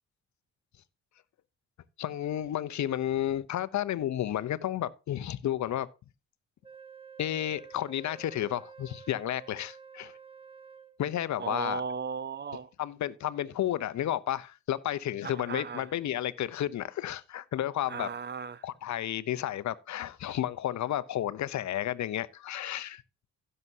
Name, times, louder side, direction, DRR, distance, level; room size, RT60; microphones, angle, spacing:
voice 1, 2.0-5.9 7.2-10.1 11.0-11.8 12.8-18.1 18.6-23.0, left 12 dB, 55° left, 0.8 m, -32 dB
Wind instrument woodwind instrument, 6.6-11.0, right 6 dB, 15° right, 1.2 m, -50 dB
voice 2, 11.4-12.7 15.2-15.9 17.9-18.7, right 5 dB, 30° right, 0.6 m, -36 dB
16.0 x 6.8 x 2.8 m
hypercardioid pair, 50°, 35 cm